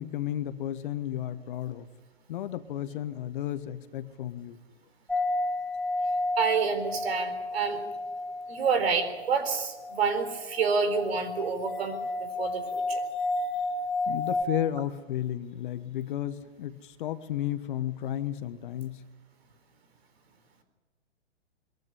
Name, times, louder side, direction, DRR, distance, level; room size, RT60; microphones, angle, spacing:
voice 1, 0.0-1.9 2.3-4.6 14.1-19.0, left 12 dB, 50° left, 12 dB, 1.2 m, -33 dB
sound 1, 5.1-14.4, left 2 dB, 5° left, 1.3 m, -32 dB
voice 2, 6.4-7.8 8.5-13.0, right 5 dB, 60° right, 9 dB, 4.1 m, -28 dB
22.0 x 14.5 x 9.9 m, 1.2 s
hypercardioid pair, 125°, 34 cm